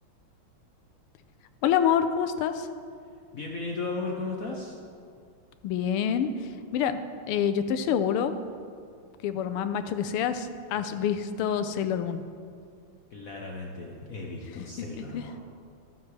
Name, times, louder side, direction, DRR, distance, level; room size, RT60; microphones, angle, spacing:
voice 1, 1.6-2.7 5.6-6.3 6.7-7.0 7.3-8.4 9.2-12.2 15.1-15.3, left 8 dB, 85° left, 9 dB, 1.5 m, -26 dB
voice 2, 3.3-4.8 10.9-11.0 13.1-15.4, left 3 dB, 60° left, -1 dB, 0.9 m, -35 dB
13.0 x 9.2 x 3.3 m, 2.2 s
omnidirectional pair, 2.4 m